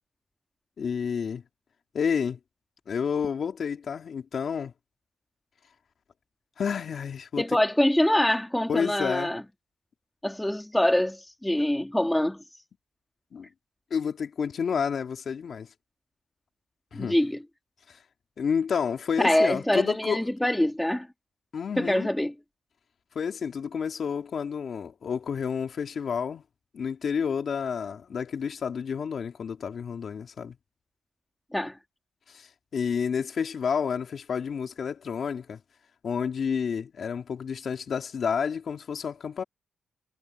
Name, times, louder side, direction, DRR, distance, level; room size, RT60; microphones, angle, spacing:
voice 1, 0.8-1.4 1.9-2.4 2.9-4.7 6.6-7.4 8.7-9.3 13.3-13.5 13.9-15.7 16.9-17.2 17.9-18.0 18.4-20.3 21.5-22.1 23.1-26.4 26.7-30.6 32.3-35.6 36.0-39.4, left 6 dB, 55° left, 2.9 m, -30 dB
voice 2, 7.4-9.4 10.2-12.4 16.9-17.4 19.2-21.1 21.8-22.3 31.5-31.8, left 1 dB, 5° left, 2.7 m, -24 dB
cardioid pair, 100°, 0 cm